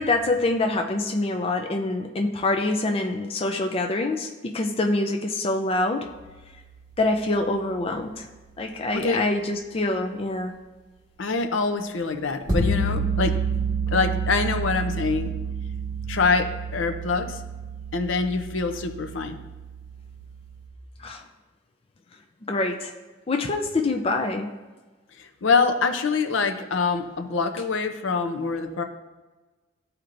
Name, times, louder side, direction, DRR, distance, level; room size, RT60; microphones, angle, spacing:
voice 1, 0.0-6.1 7.0-8.3 8.6-10.5 21.0-21.2 22.5-22.9 23.3-24.5, left 2 dB, 30° left, 4 dB, 0.4 m, -25 dB
sound 1, 6.1-6.6 12.5-20.6, right 3 dB, 20° right, 1.5 m, -29 dB
voice 2, 11.2-13.4 13.9-15.3 16.1-17.4 17.9-19.4 25.2-28.8, left 4 dB, 75° left, 7 dB, 0.6 m, -25 dB
13.0 x 4.4 x 2.6 m, 1.2 s
head